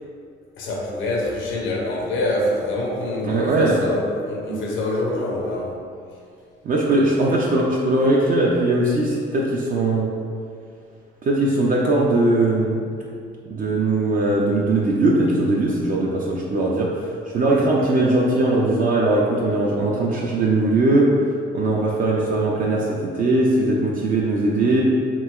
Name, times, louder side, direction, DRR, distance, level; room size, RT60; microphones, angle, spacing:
voice 1, 0.6-5.8 17.5-17.7, left 1 dB, 80° left, -1 dB, 0.6 m, -25 dB
voice 2, 3.2-3.8 4.5-4.6 6.6-10.1 11.2-12.8 13.5-21.1 21.5-24.8, right 2 dB, 45° right, -3 dB, 0.4 m, -20 dB
3.0 x 2.8 x 2.3 m, 2.3 s
cardioid pair, 90°, 20 cm